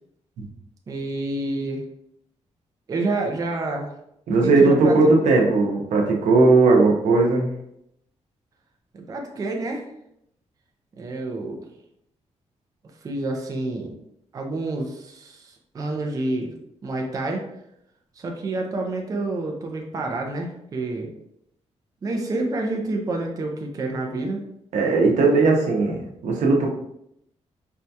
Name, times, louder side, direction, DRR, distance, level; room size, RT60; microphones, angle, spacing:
voice 1, 0.9-1.8 2.9-3.9 4.4-5.0 8.9-9.8 11.0-11.6 13.0-13.9 14.3-16.5 16.8-17.4 18.2-21.1 22.0-24.4, right 2 dB, 30° right, 1 dB, 0.4 m, -28 dB
voice 2, 4.3-7.5 24.7-26.7, right 3 dB, 90° right, 1 dB, 0.7 m, -18 dB
4.3 x 2.2 x 2.7 m, 0.76 s
wide cardioid pair, 170°, 12 cm